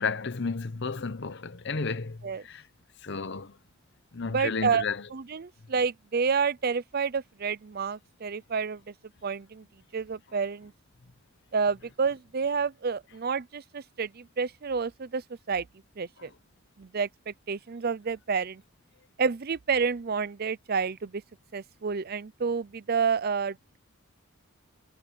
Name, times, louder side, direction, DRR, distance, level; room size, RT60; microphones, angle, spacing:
voice 1, 0.0-2.6 3.0-3.6 4.1-5.1, left 4 dB, 55° left, 0.9 m, -32 dB
voice 2, 4.3-4.8 5.1-8.9 9.2-9.7 9.9-10.7 11.5-15.2 15.5-15.7 16.0-16.3 16.8-18.6 19.2-21.2 21.5-23.8, right 5 dB, 50° right, 0.5 m, -29 dB
head